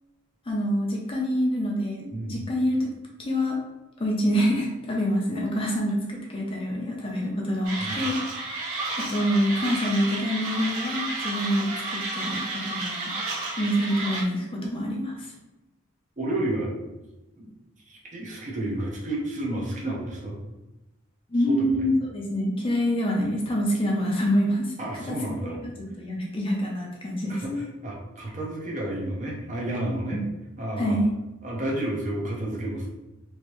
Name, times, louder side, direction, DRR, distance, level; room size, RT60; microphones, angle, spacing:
voice 1, 0.5-2.9 3.2-3.6 4.0-8.2 9.0-13.1 13.6-15.3 21.3-24.7 25.1-25.7 26.0-27.6 30.1-30.2 30.8-31.1, equal, 25° left, -2 dB, 0.6 m, -26 dB
voice 2, 2.1-2.5 7.8-8.0 16.2-16.8 17.4-17.5 17.9-20.4 21.5-21.9 24.8-25.6 27.3-30.2 30.6-31.0 31.4-32.9, right 1 dB, 35° right, -3 dB, 0.7 m, -31 dB
Mechanisms, 7.6-14.2, right 2 dB, 90° right, 0.9 m, -32 dB
3.1 x 2.7 x 3.0 m, 1.0 s
head